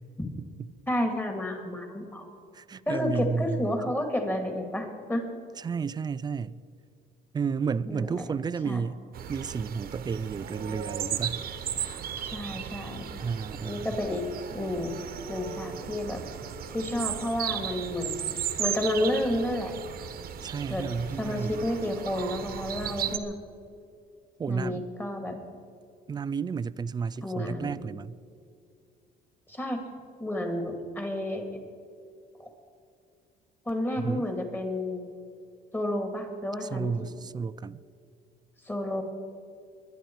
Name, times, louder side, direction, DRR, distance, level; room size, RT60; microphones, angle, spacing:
voice 1, 0.9-2.3 2.9-5.3 7.9-8.1 8.7-8.8 12.1-13.0 13.6-14.9 15.3-16.2 16.7-18.2 18.6-19.7 20.7-20.9 21.2-23.4 24.5-25.4 27.2-27.8 29.5-29.8 30.2-31.6 32.4-32.5 33.7-35.1 35.7-37.1 38.7-39.0, left 1 dB, 10° left, 2.4 m, -31 dB
voice 2, 2.5-3.8 5.6-6.6 7.3-9.0 9.3-11.4 13.2-13.9 20.4-21.7 24.4-24.8 26.1-28.2 34.0-34.3 36.6-37.8, right 5 dB, 25° right, 0.4 m, -32 dB
sound 1, 9.1-23.2, right 9 dB, 65° right, 1.3 m, -36 dB
22.5 x 10.5 x 4.7 m
cardioid pair, 110°, 17 cm